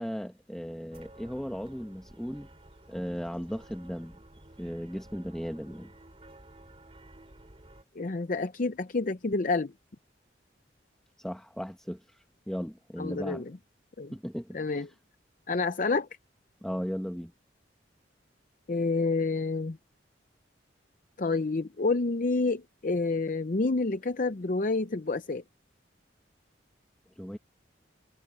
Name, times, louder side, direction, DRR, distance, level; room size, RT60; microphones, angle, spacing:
voice 1, 0.0-2.5 2.9-4.2 4.6-5.9 11.2-13.4 14.1-14.8 16.6-17.3 27.2-27.4, equal, 5° left, 0.9 m, -36 dB
sound 1, 0.9-7.8, right 1 dB, 30° right, 2.7 m, -53 dB
voice 2, 7.9-9.7 13.0-13.5 14.0-14.2 14.5-14.9 15.5-16.1 18.7-19.8 21.2-25.4, left 3 dB, 45° left, 0.6 m, -28 dB
head